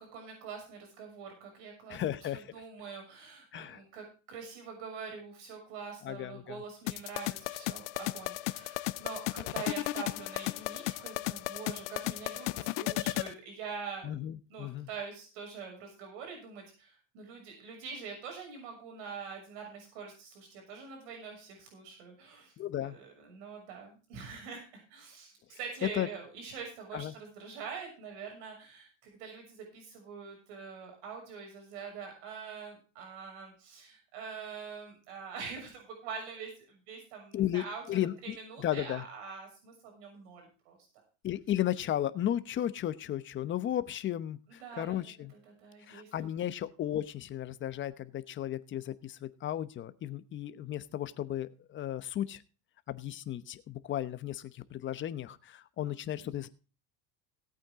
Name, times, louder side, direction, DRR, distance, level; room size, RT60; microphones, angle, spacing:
voice 1, 0.0-14.1 14.5-40.8 44.5-45.0 45.4-46.1, right 5 dB, 80° right, 2 dB, 6.4 m, -44 dB
voice 2, 1.9-2.5 3.5-3.8 6.0-6.6 14.0-14.9 22.6-23.0 25.9-26.1 26.9-27.1 37.3-38.4 38.6-39.0 41.2-45.3 45.9-52.4 52.9-56.5, left 12 dB, 35° left, 13 dB, 0.9 m, -34 dB
sound 1, 6.9-13.3, left 18 dB, 85° left, 0.9 m, -35 dB
17.0 x 8.7 x 3.7 m, 0.34 s
cardioid pair, 135°, 35 cm